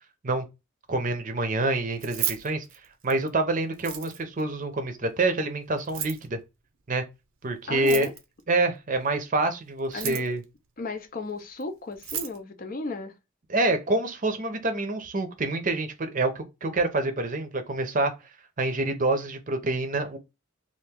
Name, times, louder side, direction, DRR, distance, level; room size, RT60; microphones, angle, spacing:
voice 1, 0.9-2.6 3.0-6.4 6.9-7.0 7.4-8.1 8.5-10.4 13.5-18.1 18.6-20.2, right 2 dB, 40° right, 0.6 m, -27 dB
Keys jangling, 1.9-3.3 3.7-4.4 5.8-6.3 7.7-8.4 9.8-10.4 11.6-11.7 11.9-12.4, right 8 dB, 85° right, 0.6 m, -33 dB
voice 2, 7.7-8.1 9.9-10.2 10.8-13.1, left 3 dB, 45° left, 0.5 m, -34 dB
2.9 x 2.5 x 3.5 m
head